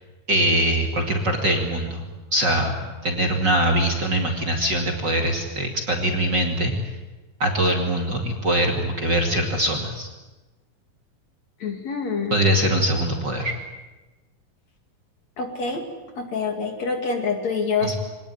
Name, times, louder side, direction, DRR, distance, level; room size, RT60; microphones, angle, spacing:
voice 1, 0.3-2.0 2.3-6.7 7.4-10.1 12.3-13.5 17.8-17.9, right 1 dB, 35° right, 2 dB, 2.6 m, -22 dB
voice 2, 11.6-12.5 15.4-15.8 16.1-17.9, left 4 dB, 50° left, 4 dB, 3.3 m, -26 dB
24.5 x 19.0 x 10.0 m, 1.2 s
omnidirectional pair, 4.2 m